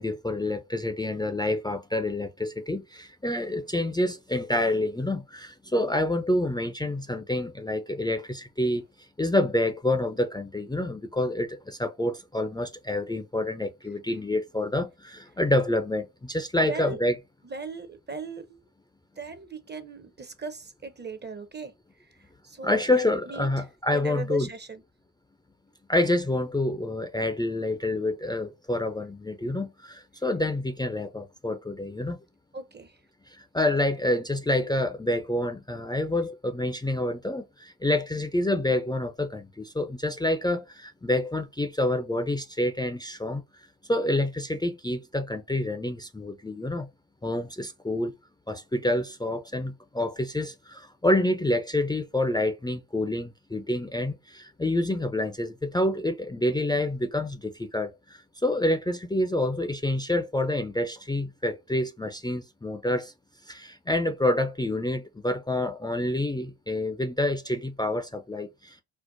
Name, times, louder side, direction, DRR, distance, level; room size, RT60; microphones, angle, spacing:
voice 1, 0.0-8.8 9.2-17.2 22.6-24.5 25.9-32.2 33.3-43.4 43.9-46.9 47.2-48.1 48.5-63.1 63.5-68.8, left 1 dB, 10° left, 0.5 m, -27 dB
voice 2, 16.6-17.0 17.4-18.7 19.2-21.7 22.4-23.5 23.9-24.8 32.5-33.0, right 4 dB, 25° right, 0.7 m, -38 dB
4.5 x 2.1 x 2.6 m
hypercardioid pair, 55°, 41 cm